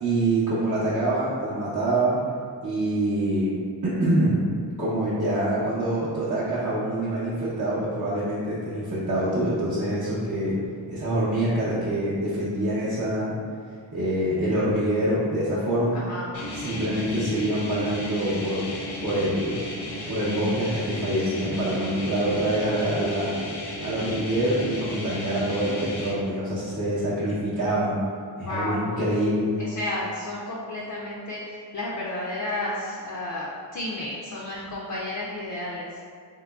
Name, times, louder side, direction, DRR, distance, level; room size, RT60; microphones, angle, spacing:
voice 1, 0.0-2.2 2.6-3.5 3.8-4.5 4.8-10.6 10.9-13.4 13.9-16.0 16.5-18.7 19.0-19.5 20.1-23.4 23.8-28.0 28.4-29.6, right 1 dB, 40° right, -11 dB, 0.7 m, -25 dB
voice 2, 15.9-16.5 28.4-29.0 29.6-35.9, left 1 dB, 45° left, -4 dB, 0.4 m, -32 dB
sound 1, 16.3-26.1, left 1 dB, 85° left, 0.9 m, -34 dB
3.7 x 2.8 x 2.3 m, 2.2 s
wide cardioid pair, 110°, 46 cm